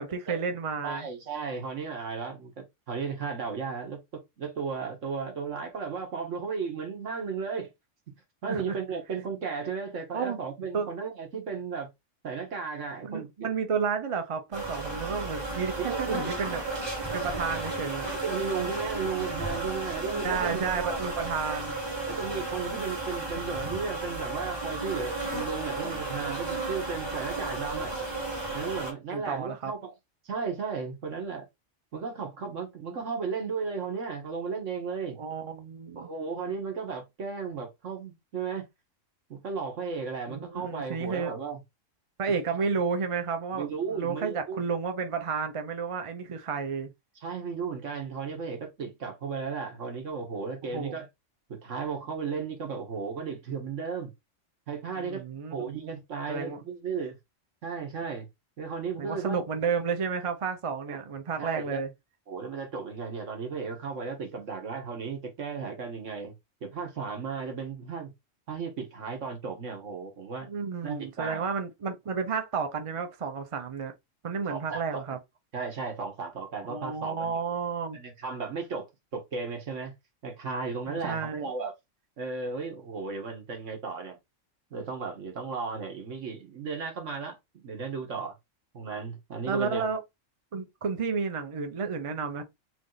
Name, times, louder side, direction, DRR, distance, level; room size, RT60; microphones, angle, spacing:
voice 1, 0.0-1.1 8.5-8.8 10.1-10.4 10.7-10.9 13.0-16.6 17.1-18.1 20.2-21.8 29.1-29.7 35.2-36.1 40.3-41.3 42.2-46.9 50.7-51.0 55.0-55.7 56.3-56.6 59.0-61.9 70.5-73.9 74.2-75.2 76.6-78.0 80.9-81.5 89.5-90.0 90.5-92.4, right 5 dB, 35° right, 0.5 m, -31 dB
voice 2, 0.8-7.7 8.4-11.9 12.2-13.5 15.8-16.3 18.1-21.0 22.1-27.9 28.5-29.9 30.3-31.5 31.9-35.2 36.0-38.7 39.3-41.6 42.6-42.7 43.5-44.6 47.2-51.1 51.5-54.1 54.7-57.2 57.6-58.3 58.6-59.4 60.9-61.0 61.4-61.8 62.3-66.3 66.6-68.1 68.5-70.5 70.8-71.4 74.5-75.0 75.5-77.4 77.9-79.9 80.2-81.7 82.2-84.2 84.7-88.4 88.7-89.9, right 5 dB, 70° right, 1.7 m, -35 dB
sound 1, 14.5-28.9, right 2 dB, 20° right, 1.1 m, -33 dB
3.5 x 3.1 x 3.9 m
omnidirectional pair, 1.3 m